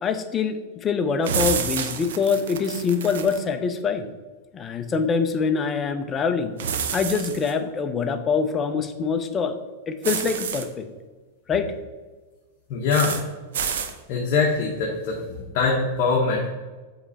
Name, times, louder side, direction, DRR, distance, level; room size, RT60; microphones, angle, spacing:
voice 1, 0.0-4.1 4.5-6.5 6.9-9.6 9.9-10.9 11.5-11.7, left 5 dB, 20° left, 8 dB, 0.4 m, -24 dB
sound 1, 1.2-3.4 6.6-7.5 10.0-10.6 12.9-13.2 13.5-13.9, right 7 dB, 80° right, 0.7 m, -28 dB
voice 2, 12.7-13.2 14.1-16.5, left 4 dB, 45° left, -2 dB, 1.0 m, -23 dB
8.0 x 3.2 x 4.0 m, 1.3 s
supercardioid pair, 160°, 0 cm